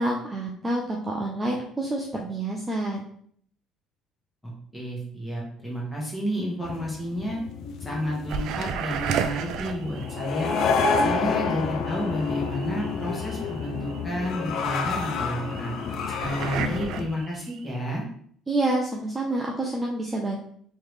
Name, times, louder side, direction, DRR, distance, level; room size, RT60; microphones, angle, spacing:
voice 1, 0.0-3.1 18.5-20.4, right 2 dB, 15° right, -2 dB, 0.5 m, -28 dB
voice 2, 4.4-7.4 7.8-10.5 11.0-15.7 16.2-18.0, equal, 10° left, -4 dB, 1.5 m, -31 dB
sound 1, 6.6-17.0, left 4 dB, 65° left, 0.4 m, -29 dB
sound 2, 8.3-17.8, right 7 dB, 65° right, 0.4 m, -35 dB
3.7 x 3.1 x 3.3 m, 0.62 s
cardioid pair, 125°, 0 cm